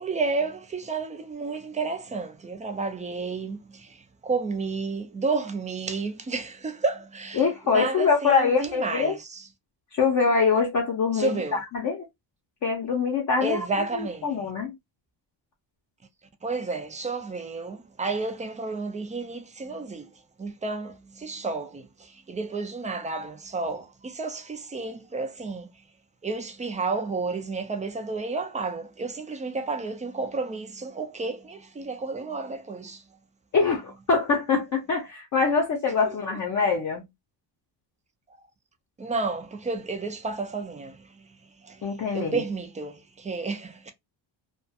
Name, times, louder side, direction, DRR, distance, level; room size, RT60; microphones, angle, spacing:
voice 1, 0.0-3.9 4.2-7.4 7.7-9.2 11.2-11.6 13.4-14.2 16.4-20.1 20.4-21.9 22.3-25.7 26.2-33.0 39.0-41.0 41.6-41.8 42.1-43.9, right 3 dB, 20° right, 0.3 m, -31 dB
voice 2, 7.4-9.2 9.9-12.0 12.6-13.6 13.9-14.7 33.5-37.1 41.8-42.5, left 5 dB, 40° left, 0.6 m, -24 dB
2.3 x 2.2 x 2.6 m
cardioid pair, 145°, 45 cm